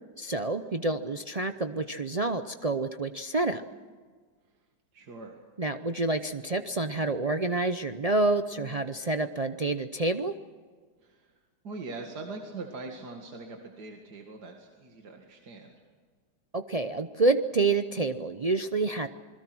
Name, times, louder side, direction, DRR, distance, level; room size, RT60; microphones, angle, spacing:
voice 1, 0.2-3.6 5.6-10.3 16.5-19.1, right 2 dB, 55° right, 7 dB, 0.4 m, -28 dB
voice 2, 4.9-5.4 11.0-11.3 11.6-15.8, right 3 dB, 75° right, 2 dB, 2.6 m, -42 dB
27.0 x 21.5 x 6.2 m, 1.5 s
omnidirectional pair, 1.8 m